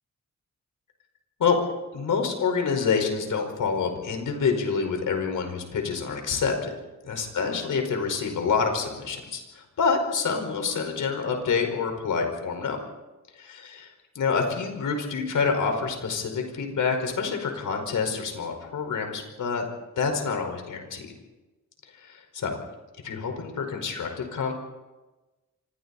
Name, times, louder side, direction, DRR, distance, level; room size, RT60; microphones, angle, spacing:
voice 1, 1.9-6.7 7.0-12.8 13.5-19.7 20.0-21.1 22.1-22.5 23.0-24.5, left 5 dB, 80° left, 4 dB, 5.1 m, -27 dB
28.5 x 25.5 x 4.3 m, 1.1 s
wide cardioid pair, 135°, 31 cm